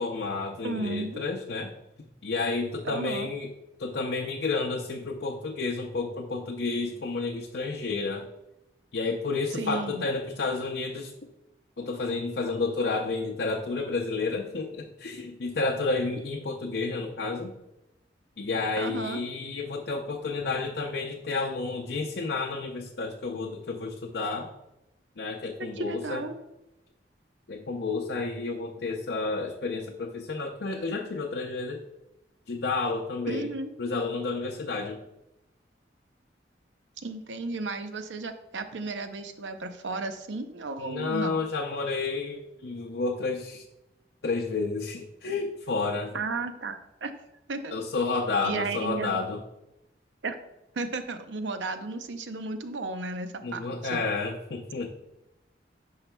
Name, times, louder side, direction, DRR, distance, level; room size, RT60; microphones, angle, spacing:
voice 1, 0.0-1.7 2.2-3.5 3.8-8.3 8.9-11.1 11.8-17.5 18.4-24.5 25.2-26.2 27.5-31.8 32.5-33.5 33.8-35.0 40.8-43.6 44.2-46.2 47.7-49.4 53.4-54.9, left 3 dB, 65° left, 1 dB, 0.6 m, -31 dB
voice 2, 0.6-1.2 2.8-3.3 9.6-10.0 18.8-19.2 25.6-26.4 33.3-33.7 37.0-41.4 46.1-47.1 47.5-47.8 48.4-49.2 50.2-50.4 50.8-53.6 53.9-54.0, right 3 dB, 85° right, 8 dB, 0.7 m, -34 dB
Drum, 20.4-22.1, right 2 dB, 60° right, 1.5 m, -52 dB
10.0 x 5.7 x 2.2 m, 0.91 s
head